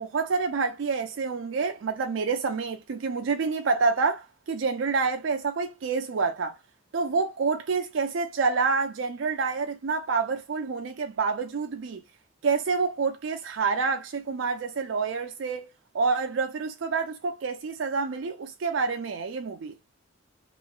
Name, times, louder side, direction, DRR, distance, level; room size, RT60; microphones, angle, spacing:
voice 1, 0.0-6.6 6.9-12.0 12.4-19.7, right 4 dB, 80° right, 0.4 m, -28 dB
3.0 x 2.9 x 2.3 m
head